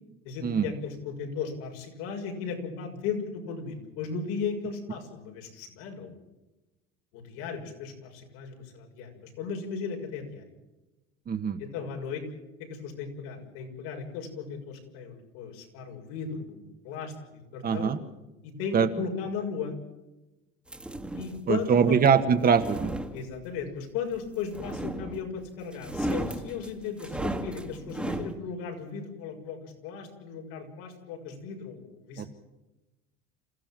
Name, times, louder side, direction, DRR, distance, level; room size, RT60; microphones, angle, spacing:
voice 1, 0.2-6.2 7.1-10.5 11.6-12.2 12.6-17.9 18.4-19.7 21.1-22.0 23.1-32.3, left 6 dB, 85° left, 2 dB, 6.7 m, -36 dB
voice 2, 11.3-11.6 17.6-18.0 18.7-18.9 21.5-22.9 32.2-32.3, right 6 dB, 30° right, 8 dB, 1.7 m, -23 dB
sound 1, 20.7-21.4 22.3-23.6 24.5-25.4 25.7-28.3, right 1 dB, 5° right, 1.9 m, -34 dB
28.0 x 15.5 x 7.7 m, 1.0 s
cardioid pair, 145°, 29 cm